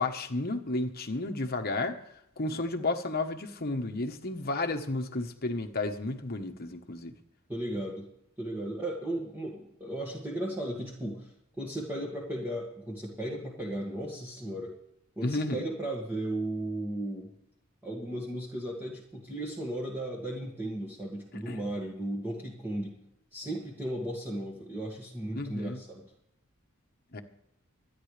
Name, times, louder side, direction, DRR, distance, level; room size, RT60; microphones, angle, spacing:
voice 1, 0.0-2.0 2.4-7.2 15.2-15.6 21.3-21.6 25.3-25.8 27.1-27.2, left 2 dB, 45° left, 5 dB, 1.3 m, -32 dB
voice 2, 7.5-8.1 8.4-14.7 15.2-17.3 17.8-23.0 23.3-26.0, right 1 dB, 10° right, -3 dB, 2.1 m, -35 dB
25.5 x 9.9 x 3.4 m, 0.78 s
head